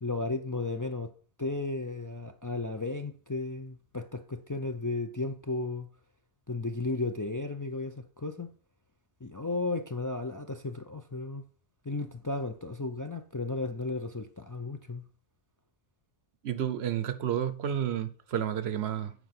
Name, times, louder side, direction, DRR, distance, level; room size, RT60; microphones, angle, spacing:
voice 1, 0.0-1.1 1.4-5.9 6.5-8.5 9.2-11.4 11.8-15.0, left 3 dB, 25° left, 0.4 m, -34 dB
voice 2, 16.4-19.1, right 9 dB, 80° right, 1.0 m, -31 dB
8.1 x 4.8 x 5.9 m
omnidirectional pair, 1.1 m